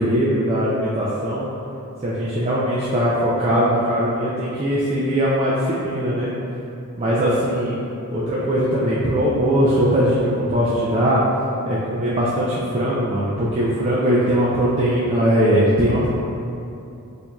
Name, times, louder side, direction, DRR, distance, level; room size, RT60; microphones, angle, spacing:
voice 1, 0.0-1.5 2.0-6.3 7.0-7.7 8.1-11.2 11.7-16.1, equal, 30° right, -8 dB, 0.4 m, -20 dB
4.5 x 2.7 x 2.3 m, 2.7 s
head